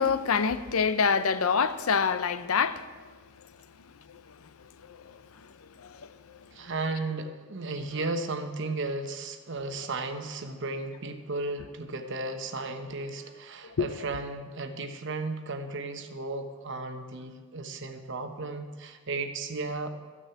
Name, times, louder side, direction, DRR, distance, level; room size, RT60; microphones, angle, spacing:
voice 1, 0.0-3.1 4.1-6.5 9.7-9.9 13.8-13.9, left 5 dB, 80° left, 0.6 m, -28 dB
voice 2, 6.5-19.9, right 3 dB, 60° right, 1.1 m, -34 dB
13.5 x 6.2 x 8.4 m
head